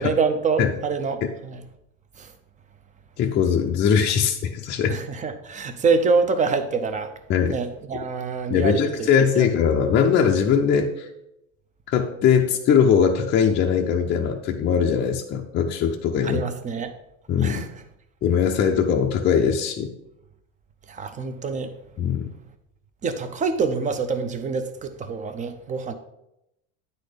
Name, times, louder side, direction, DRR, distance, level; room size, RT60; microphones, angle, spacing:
voice 1, 0.0-1.6 2.2-2.3 4.9-7.1 7.5-9.1 9.4-9.5 16.2-16.9 17.4-17.7 20.9-21.7 23.0-25.9, right 4 dB, 20° right, 9 dB, 0.6 m, -25 dB
voice 2, 3.2-5.0 7.3-7.6 8.5-11.1 11.9-16.4 17.3-17.6 18.2-19.9 22.0-22.3, left 7 dB, 30° left, 1 dB, 0.5 m, -21 dB
9.4 x 4.2 x 5.0 m, 0.86 s
supercardioid pair, 135°, 38 cm